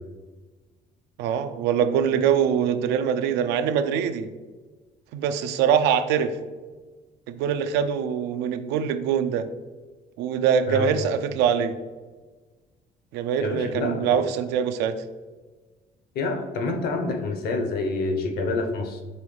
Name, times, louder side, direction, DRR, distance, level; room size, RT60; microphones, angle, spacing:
voice 1, 1.2-4.3 5.1-6.4 7.3-9.5 10.2-11.7 13.1-15.0, right 8 dB, 90° right, 10 dB, 0.4 m, -23 dB
voice 2, 10.7-11.1 13.4-14.2 16.1-19.0, left 3 dB, 65° left, 5 dB, 0.8 m, -27 dB
5.5 x 3.1 x 3.2 m, 1.3 s
cardioid pair, 110°, 17 cm